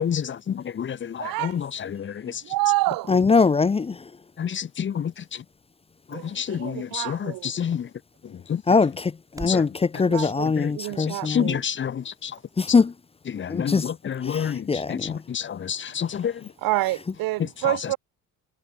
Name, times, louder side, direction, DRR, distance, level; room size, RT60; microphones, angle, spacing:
voice 1, 0.0-2.5 4.4-5.4 6.1-7.9 8.2-8.6 9.4-9.7 9.9-12.4 12.7-12.8 13.3-16.5 17.4-17.9, left 8 dB, 35° left, 2.7 m, -29 dB
voice 2, 1.2-1.5 2.4-3.1 6.1-7.5 10.0-11.6 16.6-18.0, right 19 dB, 90° right, 7.1 m, -28 dB
voice 3, 3.1-4.1 8.7-11.5 12.6-12.9 13.5-13.8 14.2-15.2, left 4 dB, 15° left, 1.0 m, -22 dB
sound 1, 3.5-9.7, right 2 dB, 10° right, 7.6 m, -50 dB
cardioid pair, 155°, 33 cm